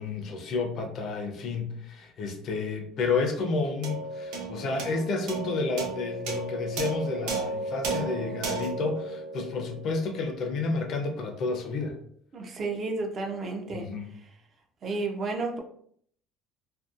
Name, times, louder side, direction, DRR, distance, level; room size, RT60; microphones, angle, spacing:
voice 1, 0.0-12.0 13.7-14.0, left 3 dB, 45° left, 4 dB, 0.4 m, -30 dB
sound 1, 3.8-10.4, right 3 dB, 75° right, 0.6 m, -34 dB
voice 2, 12.3-13.9 14.8-15.6, right 3 dB, 30° right, 3 dB, 0.4 m, -31 dB
2.6 x 2.1 x 2.4 m, 0.63 s
cardioid pair, 160°, 0 cm